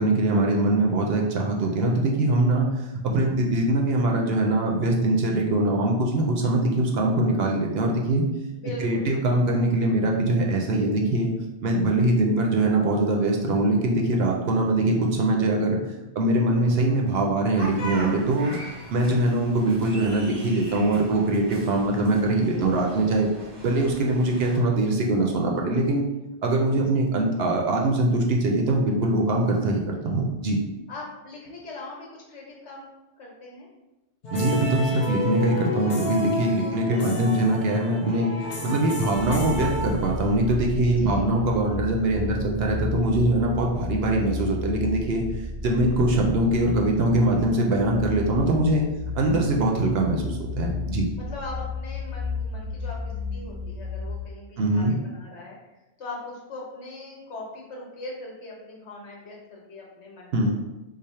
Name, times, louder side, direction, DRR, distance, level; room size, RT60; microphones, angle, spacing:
voice 1, 0.0-2.7 3.0-8.3 8.8-11.3 11.6-15.8 16.2-18.6 18.9-23.3 23.6-26.0 26.4-30.6 34.3-38.3 38.6-45.3 45.6-48.8 49.2-51.1 54.6-55.0 60.3-60.5, right 2 dB, 65° right, 1 dB, 0.7 m, -22 dB
voice 2, 8.5-9.1 22.5-22.9 23.2-23.3 30.9-32.9 33.2-33.7 36.5-37.2 40.9-41.4 51.2-55.6 56.0-60.5, left 2 dB, 70° left, -2 dB, 1.2 m, -40 dB
sound 1, 17.5-24.6, equal, 25° right, 0.7 m, -40 dB
sound 2, 34.2-40.5, left 2 dB, 50° left, 0.7 m, -31 dB
sound 3, 39.1-54.3, left 4 dB, 90° right, 1.1 m, -33 dB
3.3 x 2.0 x 4.2 m, 1.0 s
omnidirectional pair, 1.2 m